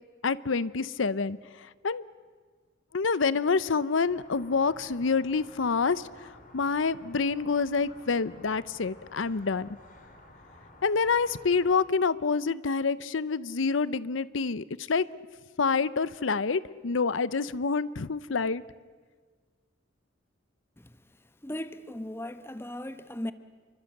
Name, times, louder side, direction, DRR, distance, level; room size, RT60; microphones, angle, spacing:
voice 1, 0.2-2.0 2.9-9.7 10.8-15.0 15.6-18.6, left 4 dB, 85° left, 0.7 m, -27 dB
sound 1, 4.1-11.8, left 1 dB, 45° left, 3.9 m, -53 dB
voice 2, 21.4-23.3, left 1 dB, 10° left, 1.0 m, -37 dB
28.5 x 24.0 x 7.8 m
head